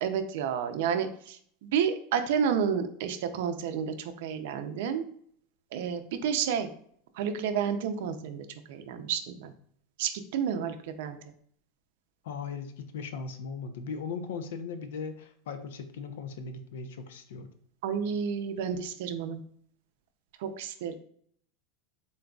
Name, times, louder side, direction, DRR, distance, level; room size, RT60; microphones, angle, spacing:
voice 1, 0.0-5.0 5.7-6.7 7.2-9.5 10.0-11.2 17.8-19.4 20.4-20.9, right 7 dB, 60° right, 8 dB, 0.5 m, -30 dB
voice 2, 12.2-17.5, left 5 dB, 85° left, 9 dB, 0.5 m, -38 dB
3.8 x 3.7 x 2.3 m, 0.62 s
supercardioid pair, 175°, 0 cm